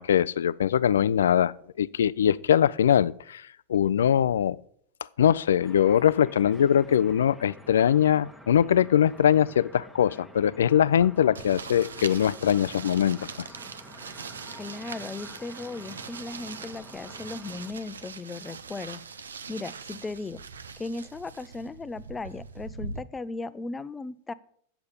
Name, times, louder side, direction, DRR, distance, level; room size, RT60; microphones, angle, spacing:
voice 1, 0.0-4.6 5.2-13.5, left 9 dB, 80° left, 20 dB, 0.3 m, -22 dB
sound 1, 5.6-17.7, equal, 5° right, 1.1 m, -49 dB
sound 2, 11.3-23.0, right 5 dB, 90° right, 0.6 m, -42 dB
voice 2, 14.6-19.0 19.5-20.4 20.8-24.3, left 3 dB, 15° left, 16 dB, 0.5 m, -37 dB
8.0 x 7.0 x 6.7 m, 0.62 s
hypercardioid pair, 105°, 0 cm